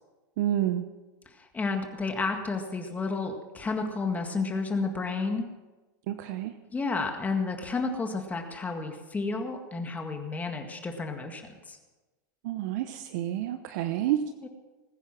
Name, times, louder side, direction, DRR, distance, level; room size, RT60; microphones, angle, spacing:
voice 1, 0.4-0.8 6.1-6.5 12.4-14.2, right 13 dB, 65° right, 9 dB, 0.9 m, -29 dB
voice 2, 1.3-5.5 6.7-11.8 14.4-14.5, left 3 dB, 15° left, 4 dB, 1.9 m, -31 dB
20.0 x 9.9 x 6.2 m, 1.2 s
supercardioid pair, 125°, 10 cm